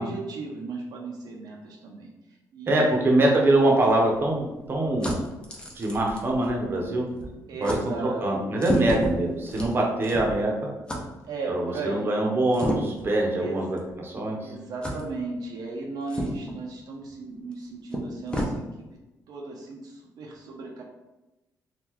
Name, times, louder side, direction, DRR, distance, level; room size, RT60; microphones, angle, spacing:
voice 1, 0.0-2.1 2.5-3.2 7.5-8.2 11.3-12.0 13.4-13.7 14.4-18.6 19.3-20.8, right 3 dB, 70° right, -1 dB, 0.5 m, -36 dB
voice 2, 2.7-5.1 5.8-7.0 7.6-7.8 8.2-10.7 11.5-14.4, right 1 dB, 30° right, -1 dB, 0.7 m, -23 dB
sound 1, 3.4-6.9 7.2-7.4 7.6-7.8 8.6-10.5 10.9-11.0 12.5-13.1 13.8-13.9 14.8-15.0 16.1-16.6 17.5-17.6 17.9-18.5, equal, 15° left, 0.5 m, -31 dB
2.9 x 2.3 x 3.6 m, 1.0 s
cardioid pair, 130°, 7 cm